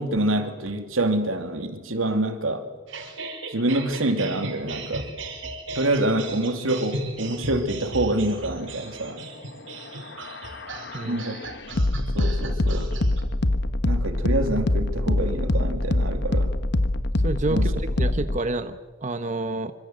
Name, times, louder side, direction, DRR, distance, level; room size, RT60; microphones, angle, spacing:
voice 1, 0.0-2.6 3.5-5.1 5.7-9.2 11.0-11.5 12.1-12.9 13.8-16.5 17.5-17.7, right 1 dB, 90° right, 6 dB, 2.9 m, -26 dB
sound 1, 2.9-13.2, right 2 dB, 65° right, 4.8 m, -36 dB
sound 2, 9.7-18.4, left 1 dB, 55° left, 1.3 m, -25 dB
voice 2, 17.2-19.7, right 2 dB, 35° right, 9 dB, 1.1 m, -29 dB
26.5 x 25.5 x 8.0 m, 1.3 s
head